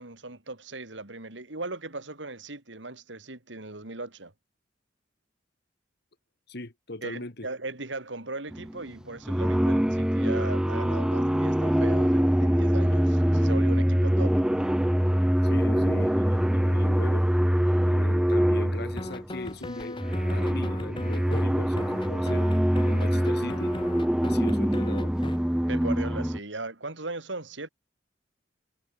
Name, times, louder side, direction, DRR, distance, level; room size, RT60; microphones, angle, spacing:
voice 1, 0.0-4.3 7.0-14.4 25.7-27.7, right 2 dB, 80° right, 3.4 m, -38 dB
voice 2, 6.5-7.5 15.4-17.2 17.8-20.0 20.3-22.5 22.9-23.7 24.2-25.1, left 2 dB, 60° left, 2.1 m, -39 dB
sound 1, 8.5-8.8 9.2-19.3 19.8-26.4, equal, 5° right, 0.4 m, -24 dB
sound 2, 19.0-21.4 21.8-25.4, left 2 dB, 25° left, 1.1 m, -37 dB
head